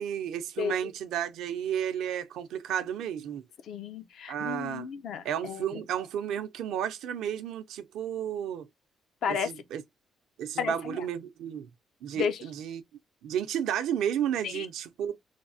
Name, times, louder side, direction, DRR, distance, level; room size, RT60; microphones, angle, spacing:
voice 1, 0.0-3.4 4.3-4.9 5.2-8.7 9.3-9.8 10.4-11.7 12.0-12.8 13.2-15.2, right 9 dB, 85° right, 0.5 m, -32 dB
voice 2, 0.6-0.9 3.7-5.6 9.2-9.5 10.6-11.0 12.1-12.4 14.4-14.7, left 7 dB, 75° left, 0.5 m, -33 dB
3.3 x 2.0 x 2.6 m
cardioid pair, 90°, 0 cm